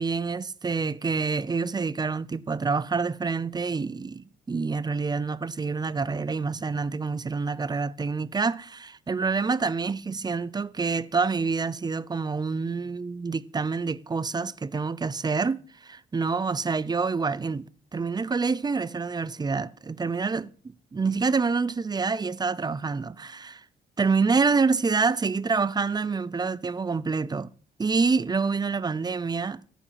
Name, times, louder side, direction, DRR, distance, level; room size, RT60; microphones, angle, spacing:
voice 1, 0.0-20.5 20.9-23.6 24.0-27.5 27.8-29.6, right 4 dB, 20° right, 0.6 m, -27 dB
14.0 x 7.2 x 7.5 m
cardioid pair, 95°, 19 cm